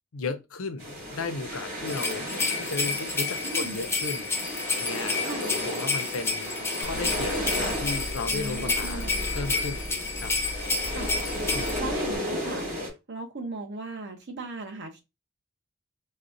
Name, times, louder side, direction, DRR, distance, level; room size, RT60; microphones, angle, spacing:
voice 1, 0.1-2.3 2.6-6.5 6.8-9.0 9.3-9.8 10.2-10.3 11.5-11.9, left 3 dB, 75° left, 0.5 m, -35 dB
sound 1, 0.8-12.9, equal, 35° right, 1.9 m, -34 dB
sound 2, 1.9-11.8, left 4 dB, 10° left, 0.5 m, -30 dB
voice 2, 3.4-3.8 5.2-5.6 8.3-9.1 10.9-11.2 11.8-15.0, right 2 dB, 60° right, 0.8 m, -38 dB
sound 3, 6.8-12.2, equal, 85° right, 1.4 m, -38 dB
4.1 x 2.2 x 2.5 m
head